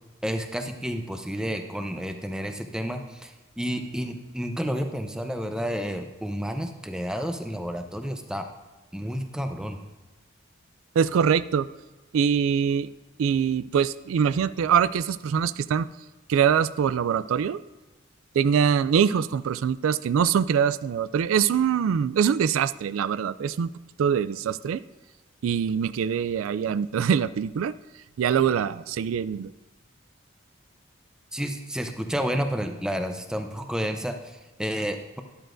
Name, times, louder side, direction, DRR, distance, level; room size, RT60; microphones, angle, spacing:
voice 1, 0.2-8.5 8.9-9.8 31.3-35.2, equal, 5° right, 5 dB, 0.7 m, -30 dB
voice 2, 11.0-11.7 12.1-12.9 13.2-15.9 16.3-17.6 18.3-23.7 24.0-24.8 25.4-27.7 28.2-29.5, right 7 dB, 85° right, 16 dB, 0.3 m, -23 dB
12.5 x 11.0 x 2.6 m, 1.2 s
head